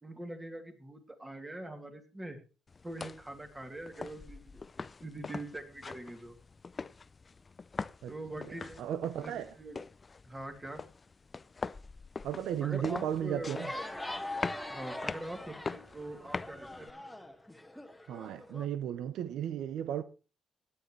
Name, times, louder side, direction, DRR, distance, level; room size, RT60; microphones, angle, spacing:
voice 1, 0.0-2.4 2.8-4.6 5.0-6.4 8.1-9.8 10.2-10.8 12.6-13.6 14.7-16.9, right 1 dB, 15° right, 3.0 m, -43 dB
sound 1, 2.7-16.9, left 4 dB, 30° left, 0.5 m, -43 dB
voice 2, 8.8-9.5 12.2-13.7 18.1-20.0, right 10 dB, 80° right, 0.8 m, -34 dB
sound 2, 13.5-18.7, left 1 dB, 5° left, 1.6 m, -42 dB
17.0 x 9.9 x 3.3 m
cardioid pair, 90°, 0 cm